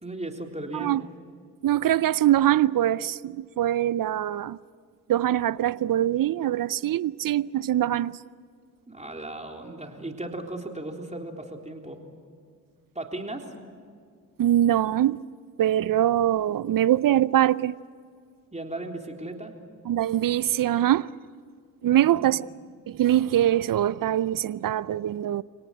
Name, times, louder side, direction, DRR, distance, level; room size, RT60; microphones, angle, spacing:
voice 1, 0.0-1.0 8.9-12.0 13.0-13.5 18.5-19.5 22.0-22.3, right 2 dB, 15° right, 3.7 m, -36 dB
voice 2, 1.6-4.6 5.1-8.2 14.4-15.2 15.6-17.8 19.9-21.1 21.8-22.5 22.9-25.4, right 12 dB, 55° right, 0.6 m, -23 dB
28.5 x 18.0 x 9.2 m
supercardioid pair, 45°, 40 cm